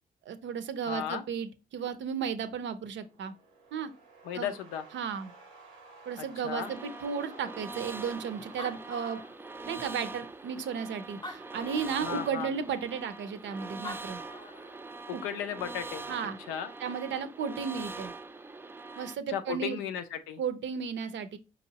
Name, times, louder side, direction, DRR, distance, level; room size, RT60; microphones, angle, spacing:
voice 1, 0.2-3.3 3.7-3.9 4.3-4.5 4.9-5.3 6.1-9.2 9.6-14.2 15.1-15.2 16.1-16.4 16.8-18.1 19.0-19.8 20.4-21.4, right 6 dB, 60° right, 0.6 m, -34 dB
voice 2, 0.9-1.2 4.3-4.8 6.2-6.7 12.0-12.5 15.1-16.1 16.5-16.7 19.3-20.4, left 9 dB, 85° left, 0.5 m, -35 dB
sound 1, 2.9-10.0, right 3 dB, 90° right, 0.8 m, -54 dB
sound 2, 6.6-19.2, right 3 dB, 10° right, 0.3 m, -43 dB
Animal, 8.4-9.8 10.5-10.6 11.1-12.1 13.6-13.7 13.8-14.8, left 2 dB, 20° left, 0.7 m, -44 dB
5.1 x 2.9 x 2.8 m
hypercardioid pair, 40°, 21 cm